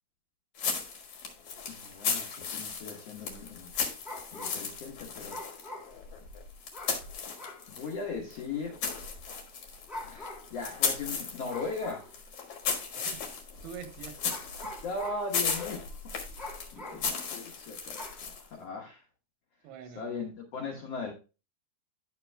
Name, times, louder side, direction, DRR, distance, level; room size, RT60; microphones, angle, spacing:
sound 1, 0.6-7.9 8.3-18.5, left 5 dB, 55° left, 1.8 m, -36 dB
voice 1, 1.7-3.7 4.3-5.4 7.7-8.8 10.1-12.0 14.8-15.9 16.4-19.0 19.9-21.1, left 4 dB, 70° left, -1 dB, 1.5 m, -38 dB
sound 2, 3.8-4.8 5.3-6.3 6.7-7.1 7.4-7.7 8.3-8.4 9.7-10.6 11.5-12.2 13.0-13.1 14.2-15.8 16.4-17.1 17.9-18.2, left 2 dB, ahead, 0.3 m, -44 dB
voice 2, 13.6-14.7 15.7-15.8 16.7-17.1 19.6-20.2, right 7 dB, 90° right, 8 dB, 3.1 m, -46 dB
11.5 x 6.0 x 2.2 m, 0.32 s
omnidirectional pair, 4.6 m